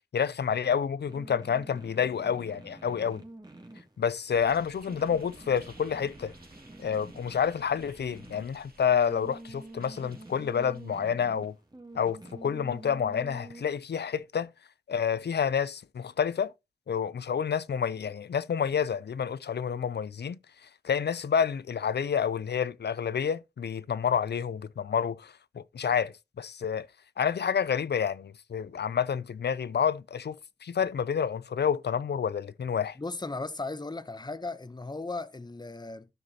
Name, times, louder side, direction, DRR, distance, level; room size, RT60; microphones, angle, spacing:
voice 1, 0.1-3.2 4.0-6.3 6.8-11.6 11.9-14.5 14.9-16.5 16.9-20.4 20.8-26.9 27.2-30.4 30.6-33.0, left 7 dB, 75° left, 0.4 m, -29 dB
sound 1, 1.1-13.6, right 2 dB, 25° right, 2.4 m, -48 dB
sound 2, 4.3-11.4, right 2 dB, 60° right, 2.1 m, -56 dB
voice 2, 33.0-36.1, left 3 dB, 25° left, 0.8 m, -36 dB
14.5 x 6.3 x 2.8 m
wide cardioid pair, 55°, 17 cm